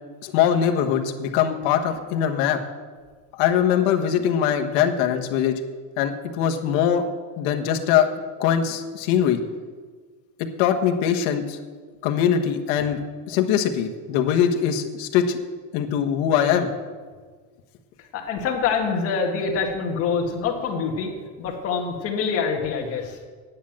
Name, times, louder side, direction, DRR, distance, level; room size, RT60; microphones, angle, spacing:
voice 1, 0.2-2.6 3.3-5.6 6.0-7.0 7.4-8.1 8.4-9.4 10.6-11.6 12.0-13.0 13.3-15.4 15.7-16.7, left 9 dB, 65° left, 5 dB, 1.3 m, -22 dB
voice 2, 18.1-21.1 21.4-23.2, left 5 dB, 40° left, 1 dB, 1.8 m, -25 dB
10.0 x 7.7 x 8.7 m, 1.5 s
cardioid pair, 180°, 36 cm